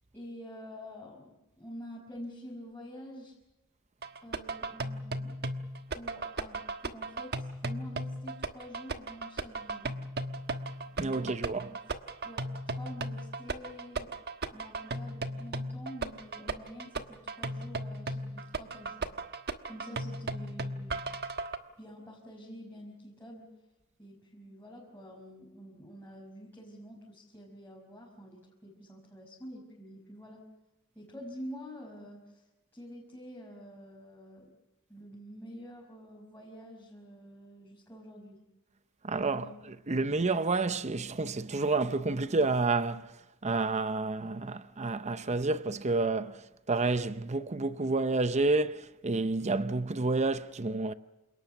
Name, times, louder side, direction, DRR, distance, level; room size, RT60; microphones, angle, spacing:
voice 1, 0.1-3.4 4.2-5.4 5.9-9.9 11.0-11.8 12.2-12.5 12.7-14.2 14.5-19.1 19.7-21.1 21.8-23.5 24.0-30.4 31.0-32.4 32.7-34.5 34.9-38.4 39.3-39.5, equal, 10° left, 5.4 m, -47 dB
sound 1, 4.0-21.6, right 2 dB, 50° right, 1.3 m, -36 dB
voice 2, 11.0-11.7 39.0-39.4 39.9-43.1 43.4-46.4 46.7-50.9, right 3 dB, 30° right, 0.7 m, -29 dB
28.5 x 19.0 x 6.7 m
head